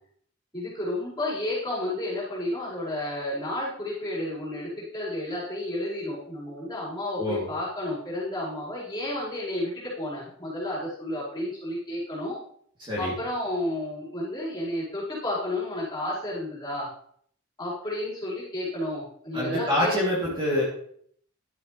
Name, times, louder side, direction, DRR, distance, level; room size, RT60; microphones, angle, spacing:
voice 1, 0.5-12.4 13.0-16.9 17.6-19.9, left 1 dB, 20° left, -8 dB, 4.9 m, -31 dB
voice 2, 12.8-13.1 19.3-20.6, left 1 dB, 25° right, -6 dB, 2.9 m, -26 dB
11.5 x 8.5 x 3.3 m, 0.64 s
head